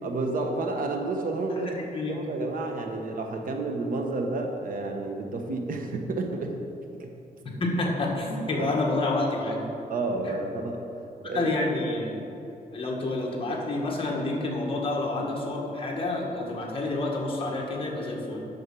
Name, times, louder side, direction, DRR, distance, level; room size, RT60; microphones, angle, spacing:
voice 1, 0.0-1.7 2.1-6.6 7.0-7.1 8.6-8.7 9.9-10.8 11.2-11.5, right 3 dB, 65° right, 3 dB, 1.1 m, -30 dB
voice 2, 1.6-2.3 7.6-9.6 10.2-10.3 11.3-12.2 12.7-18.5, left 2 dB, 35° left, -1 dB, 1.7 m, -29 dB
9.7 x 6.5 x 6.2 m, 2.8 s
wide cardioid pair, 155°, 15 cm